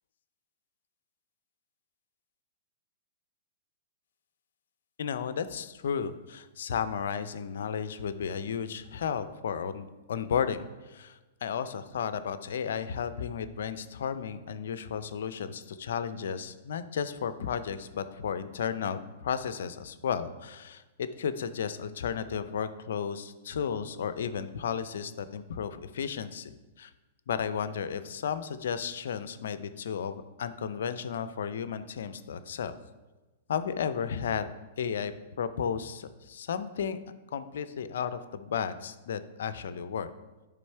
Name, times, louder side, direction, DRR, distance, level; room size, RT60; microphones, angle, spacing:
voice 1, 5.0-26.5 26.8-26.9 27.3-32.7 33.5-34.5 34.8-35.1 35.4-37.0 37.3-40.1, left 7 dB, 75° left, 12 dB, 0.5 m, -33 dB
10.0 x 3.6 x 4.4 m, 1.1 s
hypercardioid pair, 120°, 0 cm